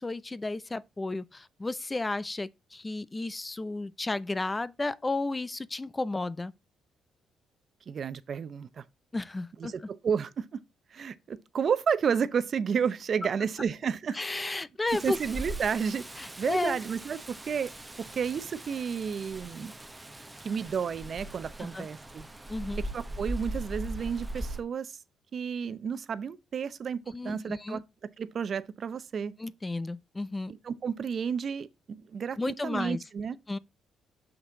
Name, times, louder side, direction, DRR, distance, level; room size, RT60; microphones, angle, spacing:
voice 1, 0.0-6.5 9.1-9.7 14.1-15.2 16.2-16.8 21.6-21.9 22.5-22.8 27.1-27.8 29.4-30.5 32.4-33.0 33.5-33.6, left 2 dB, 20° left, 0.5 m, -33 dB
voice 2, 7.9-8.8 9.6-10.6 10.9-14.2 15.0-16.0 16.4-17.7 18.0-19.7 20.4-22.2 22.8-25.0 25.3-27.0 27.2-27.8 28.2-29.3 30.6-33.4, right 7 dB, 50° right, 0.7 m, -31 dB
Rain, 14.9-24.6, right 1 dB, 10° right, 0.9 m, -40 dB
6.3 x 5.9 x 3.8 m
cardioid pair, 90°, 0 cm